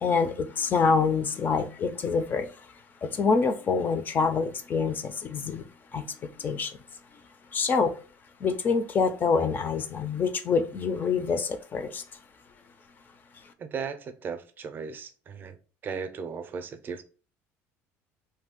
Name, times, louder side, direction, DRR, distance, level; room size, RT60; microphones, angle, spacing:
voice 1, 0.0-2.5 3.0-5.6 5.9-6.8 7.5-7.9 8.4-12.0, left 5 dB, 35° left, 0.4 m, -26 dB
voice 2, 13.6-15.6 15.8-17.0, right 5 dB, 35° right, 0.5 m, -36 dB
2.6 x 2.3 x 3.6 m
cardioid pair, 130°, 6 cm